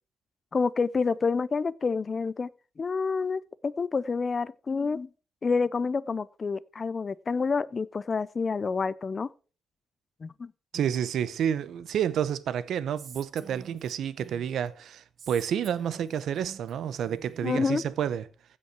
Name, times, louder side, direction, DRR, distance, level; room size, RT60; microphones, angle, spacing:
voice 1, 0.5-2.5 2.8-5.1 5.4-9.3 10.2-10.5 17.4-17.8, left 4 dB, 30° left, 0.4 m, -28 dB
voice 2, 10.7-18.3, right 9 dB, 70° right, 0.7 m, -29 dB
Female speech woman speaking, 13.0-14.7 15.2-17.7, right 6 dB, 45° right, 1.2 m, -48 dB
15.5 x 5.5 x 4.6 m
cardioid pair, 150°, 0 cm